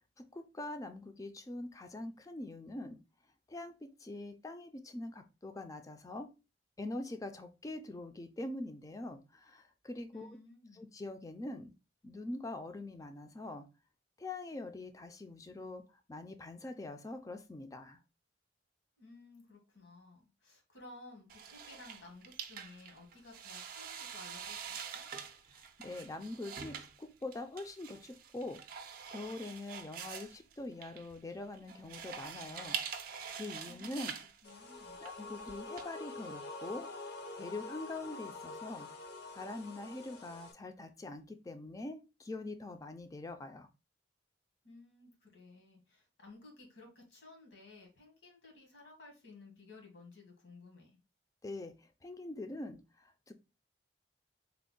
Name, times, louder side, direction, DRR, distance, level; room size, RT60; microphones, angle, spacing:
voice 1, 0.2-3.0 3.5-6.3 6.8-10.4 10.7-11.7 12.0-13.7 14.2-15.8 16.1-18.0 25.5-28.6 29.1-32.8 33.3-34.1 35.0-36.9 37.4-38.9 39.3-43.7 51.4-51.8 52.0-53.3, left 2 dB, 20° left, 0.3 m, -44 dB
voice 2, 10.1-10.8 19.0-25.0 33.6-34.1 34.4-35.0 44.6-51.0, left 2 dB, 85° left, 1.5 m, -55 dB
sound 1, 21.3-35.8, right 7 dB, 50° right, 0.4 m, -45 dB
sound 2, 34.4-40.5, left 3 dB, 65° left, 0.6 m, -46 dB
3.4 x 2.1 x 3.7 m
head